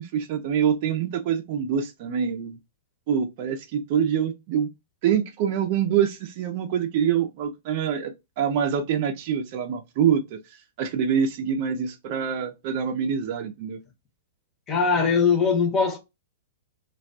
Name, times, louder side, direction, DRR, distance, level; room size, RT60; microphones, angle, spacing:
voice 1, 0.0-2.6 3.1-4.7 5.0-10.4 10.8-13.8, right 8 dB, 50° right, 0.5 m, -25 dB
voice 2, 14.7-16.0, left 5 dB, 25° left, 0.9 m, -21 dB
2.3 x 2.2 x 2.5 m
hypercardioid pair, 115°, 0 cm